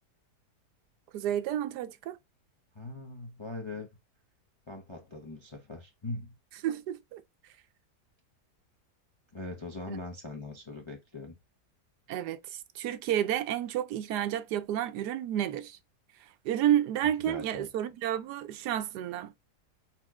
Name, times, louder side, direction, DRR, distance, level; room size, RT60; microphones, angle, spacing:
voice 1, 1.1-2.2 6.6-7.2 9.9-10.0 12.1-12.4 12.8-15.8 16.4-19.3, right 11 dB, 75° right, 1.1 m, -30 dB
voice 2, 2.7-3.9 4.7-6.3 9.3-11.4 17.2-17.7, left 2 dB, 35° left, 0.5 m, -41 dB
4.4 x 4.2 x 2.3 m
omnidirectional pair, 1.8 m